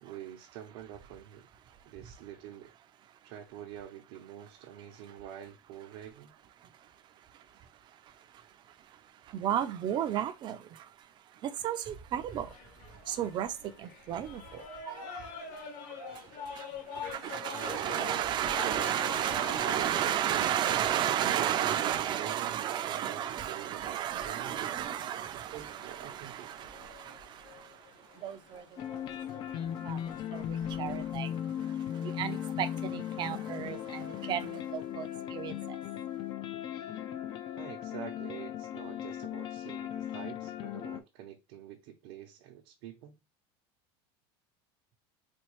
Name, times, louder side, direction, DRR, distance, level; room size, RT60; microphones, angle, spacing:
voice 1, 0.0-1.5 1.8-2.7 3.2-6.3 17.5-20.1 21.7-24.6 25.5-26.5 37.6-43.2, right 10 dB, 65° right, 0.8 m, -47 dB
voice 2, 9.3-10.9 11.4-12.5 13.1-15.3 16.0-16.2 16.5-16.7 16.9-27.7 28.2-29.0 29.8-31.3 31.9-35.6, right 10 dB, 35° right, 0.5 m, -33 dB
sound 1, 12.3-31.2, left 5 dB, 60° left, 1.3 m, -47 dB
sound 2, 28.8-41.0, left 10 dB, 35° left, 0.4 m, -37 dB
4.3 x 2.3 x 3.1 m
supercardioid pair, 140°, 13 cm